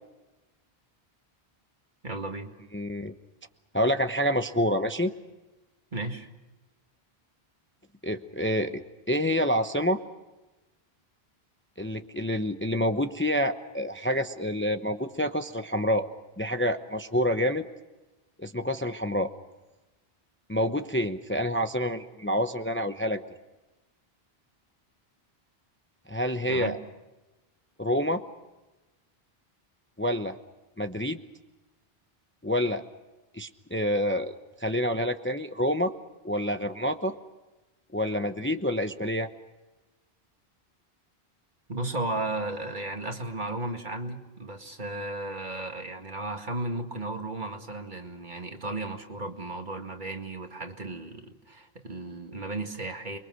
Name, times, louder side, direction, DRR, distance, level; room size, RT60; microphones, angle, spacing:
voice 1, 2.0-2.5 5.9-6.3 26.5-26.8 41.7-53.2, right 2 dB, 50° right, 4 dB, 2.2 m, -34 dB
voice 2, 2.7-3.1 3.7-5.1 8.0-10.0 11.8-16.1 16.4-17.7 18.4-19.3 20.5-23.2 26.1-26.8 27.8-28.2 30.0-30.3 30.8-31.2 32.4-32.8 33.3-34.3 34.6-35.9 36.2-37.1 37.9-39.3, equal, 10° left, 7 dB, 0.8 m, -27 dB
29.0 x 23.0 x 6.4 m, 1.1 s
omnidirectional pair, 1.1 m